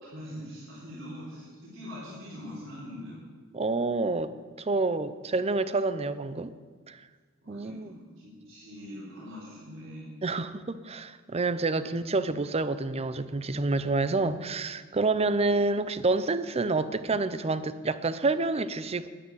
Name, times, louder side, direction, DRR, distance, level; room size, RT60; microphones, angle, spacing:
voice 1, 0.1-3.2 3.9-4.2 7.4-10.1 11.7-11.9, equal, 70° right, -7 dB, 3.9 m, -43 dB
voice 2, 3.5-6.5 6.9-7.0 7.5-7.9 10.2-19.1, right 3 dB, 30° right, 14 dB, 0.6 m, -28 dB
10.0 x 9.6 x 9.0 m, 1.5 s
head